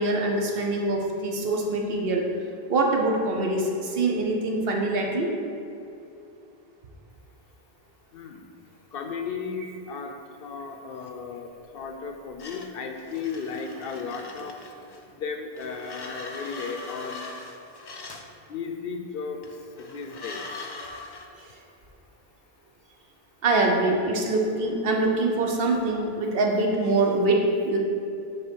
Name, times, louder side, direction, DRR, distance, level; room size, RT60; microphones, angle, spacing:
voice 1, 0.0-2.3 2.7-5.3 23.4-27.8, right 2 dB, 70° right, 1 dB, 1.0 m, -24 dB
voice 2, 8.1-8.5 8.9-14.6 15.1-17.2 18.5-20.4, left 5 dB, 70° left, 4 dB, 0.7 m, -35 dB
sound 1, 12.4-15.1 15.5-18.3 19.4-21.3, left 3 dB, 40° left, 0.3 m, -41 dB
6.6 x 3.7 x 4.4 m, 2.6 s
omnidirectional pair, 1.0 m